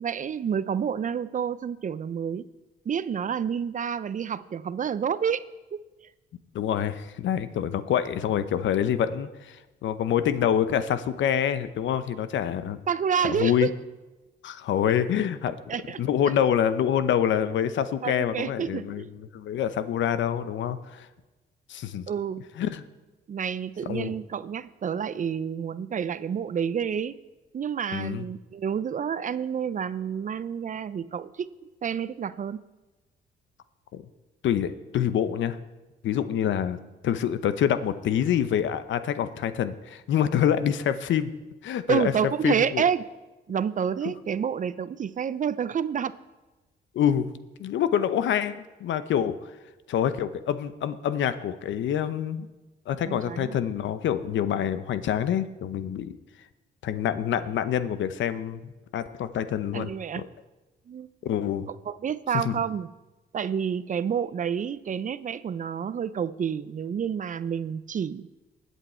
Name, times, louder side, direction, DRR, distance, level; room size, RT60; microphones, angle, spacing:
voice 1, 0.0-2.4 2.9-5.4 5.7-5.8 12.9-13.7 15.7-16.0 18.0-19.1 22.1-22.4 23.3-27.2 27.5-31.5 31.8-32.6 41.9-43.1 43.5-46.2 53.1-53.6 59.7-60.2 60.9-61.1 61.7-62.9 63.3-68.3, right 7 dB, 40° right, 15 dB, 0.5 m, -29 dB
voice 2, 6.5-12.8 13.4-13.7 14.4-15.5 16.0-21.1 21.7-22.1 22.6-22.8 23.9-24.1 27.9-28.2 33.9-34.0 34.4-35.6 36.0-36.8 37.0-41.3 41.6-42.1 42.4-42.8 46.9-47.3 47.6-49.4 49.9-52.5 52.9-56.2 56.8-59.9 60.2-60.3 61.2-61.7 62.3-62.6, left 9 dB, 70° left, 13 dB, 0.8 m, -26 dB
20.5 x 8.2 x 4.4 m, 1.1 s
cardioid pair, 90°, 20 cm